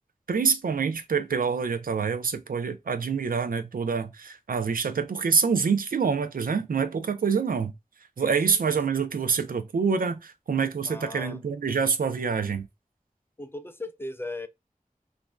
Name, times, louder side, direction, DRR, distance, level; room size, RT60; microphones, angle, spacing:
voice 1, 0.3-7.7 8.2-12.7, right 5 dB, 90° right, 0.4 m, -26 dB
voice 2, 8.5-9.0 10.9-11.4 13.4-14.5, left 2 dB, 15° left, 0.4 m, -38 dB
2.5 x 2.1 x 3.0 m
wide cardioid pair, 45°, 14 cm